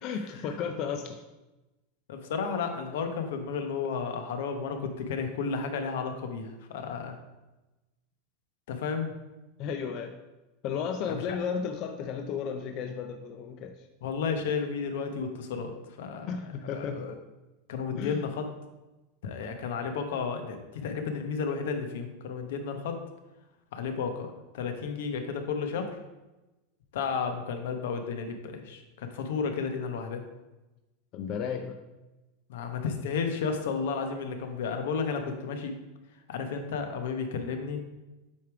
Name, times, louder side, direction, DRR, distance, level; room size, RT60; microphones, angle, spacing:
voice 1, 0.0-1.2 9.6-10.1 10.6-13.9 16.3-17.0 18.0-18.2 31.1-31.8, left 6 dB, 40° left, 5 dB, 0.4 m, -34 dB
voice 2, 2.1-7.2 8.7-9.1 11.1-11.4 14.0-16.3 16.6-17.1 17.7-18.5 19.2-23.0 23.7-24.3 24.5-26.0 26.9-30.3 32.5-35.7 36.3-37.8, left 5 dB, 75° left, 6 dB, 1.0 m, -32 dB
8.3 x 3.4 x 4.7 m, 1.1 s
supercardioid pair, 160°, 0 cm